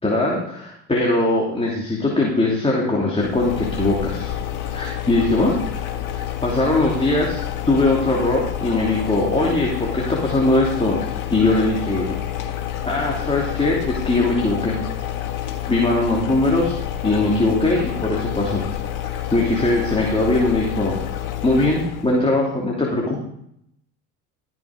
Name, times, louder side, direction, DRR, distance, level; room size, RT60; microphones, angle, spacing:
voice 1, 0.0-4.3 4.7-5.6 6.1-11.0 11.3-12.2 12.8-14.8 15.7-16.8 17.0-18.6 19.0-20.9 21.4-23.2, left 2 dB, 15° left, -3 dB, 3.0 m, -20 dB
sound 1, 3.2-22.1, left 11 dB, 60° left, 1.7 m, -28 dB
15.5 x 6.5 x 5.2 m, 0.73 s
supercardioid pair, 80°, 37 cm